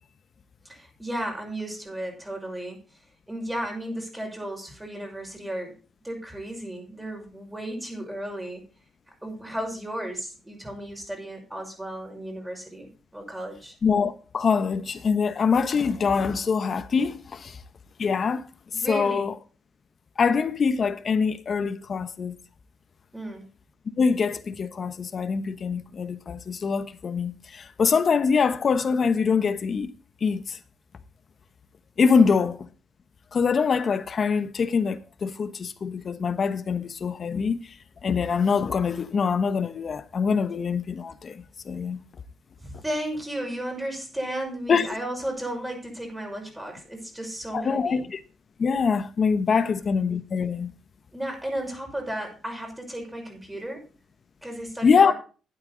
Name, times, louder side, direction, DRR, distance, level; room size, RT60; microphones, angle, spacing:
voice 1, 0.6-3.0 3.3-5.7 6.0-8.6 9.2-12.9 13.1-13.7 18.7-19.3 23.1-23.5 32.2-32.3 42.6-48.1 49.5-49.7 51.1-53.8 54.4-55.1, right 1 dB, 10° right, 5.7 m, -34 dB
voice 2, 13.8-17.6 18.0-18.4 18.7-19.3 20.2-22.4 24.0-29.9 30.2-30.6 32.0-32.6 33.3-37.6 38.0-42.0 44.7-44.8 47.5-48.2 48.6-50.7 54.8-55.1, left 5 dB, 45° left, 1.1 m, -24 dB
12.0 x 8.8 x 3.9 m
cardioid pair, 90°, 0 cm